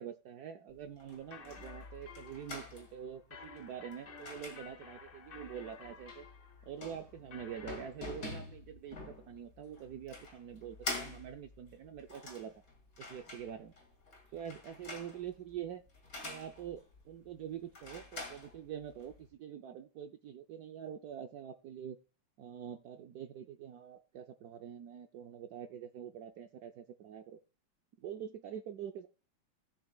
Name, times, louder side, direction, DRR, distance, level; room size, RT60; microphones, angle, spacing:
voice 1, 0.0-6.3 6.6-12.6 13.0-13.7 14.3-15.8 16.2-22.0 22.4-27.4 28.0-29.1, right 9 dB, 75° right, 7 dB, 0.9 m, -45 dB
sound 1, 0.7-19.3, left 3 dB, 40° left, 2.6 m, -48 dB
sound 2, 1.2-7.8, left 5 dB, 60° left, 0.5 m, -54 dB
18.5 x 7.1 x 2.3 m, 0.33 s
omnidirectional pair, 2.3 m